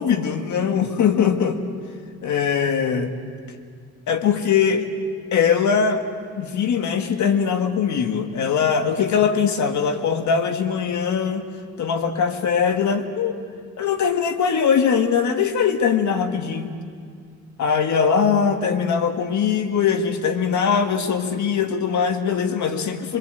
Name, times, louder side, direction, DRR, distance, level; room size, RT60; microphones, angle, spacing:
voice 1, 0.0-1.6 2.2-3.1 4.1-4.9 5.3-6.0 6.4-11.5 11.8-13.3 13.8-16.8 17.6-23.2, left 6 dB, 70° left, 6 dB, 2.0 m, -21 dB
24.5 x 23.5 x 8.1 m, 2.2 s
cardioid pair, 90°, 30 cm